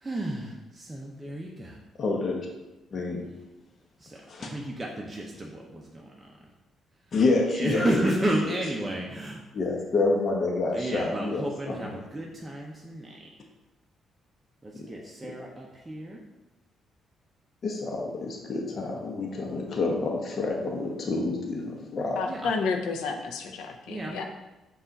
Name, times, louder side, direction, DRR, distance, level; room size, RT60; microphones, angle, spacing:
voice 1, 0.0-1.8 4.0-6.0 7.5-9.4 10.7-13.2 14.6-16.2 22.2-22.5 23.9-24.2, right 1 dB, 15° right, -2 dB, 0.6 m, -32 dB
voice 2, 2.0-2.4 2.9-3.3 4.3-4.5 7.1-7.8 8.5-8.6 9.5-11.9 14.8-14.9 15.2-15.3 17.6-22.2, left 3 dB, 50° left, 0 dB, 0.8 m, -28 dB
voice 3, 22.2-24.2, left 4 dB, 85° left, 4 dB, 0.5 m, -31 dB
5.4 x 2.4 x 4.0 m, 1.0 s
cardioid pair, 90°, 0 cm